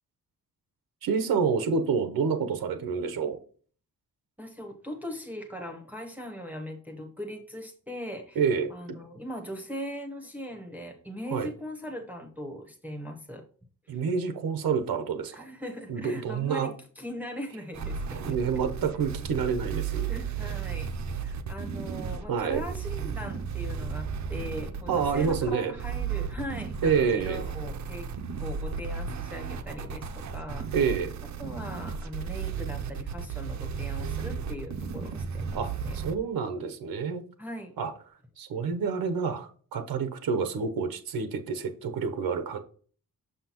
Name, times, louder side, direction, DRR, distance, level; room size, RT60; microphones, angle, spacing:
voice 1, 1.0-3.4 8.4-9.0 11.3-11.5 13.9-15.4 15.9-16.7 18.2-20.1 20.4-20.5 22.3-22.6 24.9-25.7 26.8-27.5 30.7-31.1 35.5-37.2 37.8-37.9 38.4-42.6, right 6 dB, 85° right, 0.9 m, -28 dB
voice 2, 4.4-8.4 8.7-13.4 13.9-14.0 15.3-16.7 17.0-18.4 20.1-20.9 21.2-28.1 28.4-30.7 31.2-36.0 37.4-37.7, equal, 5° right, 0.9 m, -40 dB
sound 1, 17.7-36.1, right 6 dB, 55° right, 0.6 m, -34 dB
6.5 x 5.6 x 2.9 m
wide cardioid pair, 150°, 35 cm